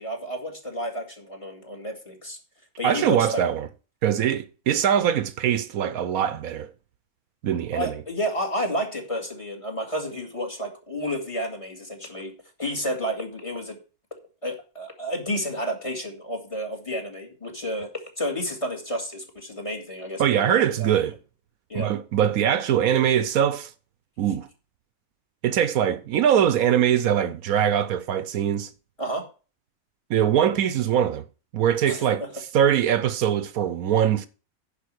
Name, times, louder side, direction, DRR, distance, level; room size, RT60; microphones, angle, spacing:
voice 1, 0.0-2.4 2.8-3.4 7.7-12.3 12.6-13.8 14.4-17.9 18.2-20.9 21.7-21.9 29.0-29.2 31.8-32.3, equal, 20° left, 2.4 m, -31 dB
voice 2, 2.8-3.7 4.0-6.7 7.4-7.9 20.2-21.1 21.7-23.7 24.2-24.5 25.4-28.7 30.1-31.2 31.5-32.2 32.5-34.3, right 9 dB, 75° right, 1.1 m, -22 dB
10.0 x 5.2 x 6.4 m
omnidirectional pair, 1.5 m